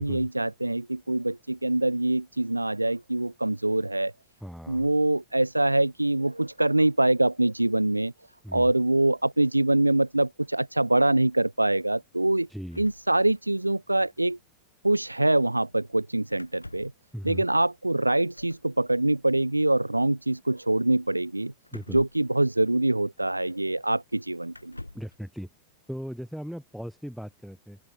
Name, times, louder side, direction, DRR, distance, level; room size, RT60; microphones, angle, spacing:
voice 1, 0.0-4.1 4.7-8.1 8.5-12.5 12.8-14.4 14.8-16.9 17.2-21.5 21.9-24.8, right 2 dB, 85° right, 1.1 m, -24 dB
voice 2, 4.4-4.9 8.4-8.7 12.5-12.8 17.1-17.4 21.7-22.0 24.9-25.5 25.9-27.8, equal, ahead, 6.8 m, -38 dB
sound 1, 12.7-13.8 14.0-14.1 14.3-14.5 16.3-17.1 18.3-18.7 21.6-22.8 23.7-23.8 24.5-25.2, left 2 dB, 85° left, 5.8 m, -47 dB
open air
figure-of-eight pair, 90°, 0 cm